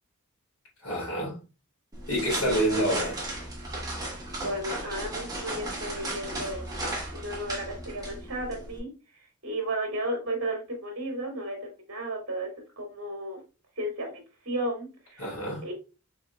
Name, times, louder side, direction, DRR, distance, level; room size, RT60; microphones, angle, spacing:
voice 1, 0.8-1.4 2.1-3.2 15.2-15.6, equal, 85° left, 2.5 m, -27 dB
sound 1, 1.9-8.8, right 1 dB, 15° right, 1.2 m, -35 dB
voice 2, 4.3-6.8 7.1-8.9 9.4-12.5 12.8-13.4 13.8-15.3 15.6-15.7, right 1 dB, 60° right, 2.1 m, -34 dB
5.2 x 3.6 x 2.3 m
head